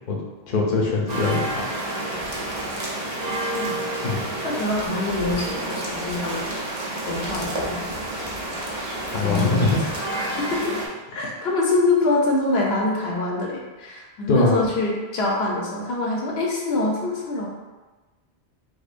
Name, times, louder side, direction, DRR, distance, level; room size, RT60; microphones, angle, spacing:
voice 1, 0.1-1.6 4.0-4.2 9.1-9.8 14.3-14.5, left 3 dB, 50° left, -3 dB, 0.7 m, -22 dB
sound 1, 1.1-10.9, right 1 dB, 45° right, 0.7 m, -29 dB
voice 2, 4.4-6.5 7.1-8.0 9.2-9.7 10.1-10.8 11.1-17.5, left 2 dB, 75° left, -2 dB, 0.9 m, -25 dB
4.8 x 2.1 x 2.5 m, 1.2 s
omnidirectional pair, 1.1 m